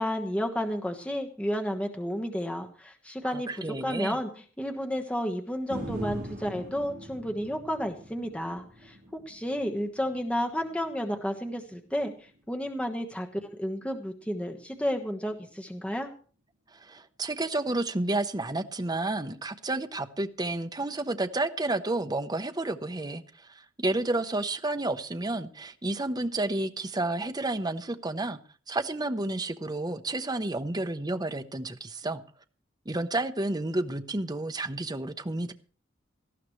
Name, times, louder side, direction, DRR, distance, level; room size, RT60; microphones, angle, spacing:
voice 1, 0.0-4.3 4.6-9.0 9.3-12.1 12.5-16.1, equal, 5° left, 1.3 m, -31 dB
voice 2, 3.2-4.2 16.7-28.4 28.7-32.2 32.9-35.5, right 2 dB, 20° right, 0.9 m, -31 dB
sound 1, 5.7-13.9 14.3-14.4, equal, 45° right, 7.0 m, -43 dB
18.5 x 14.0 x 3.2 m
head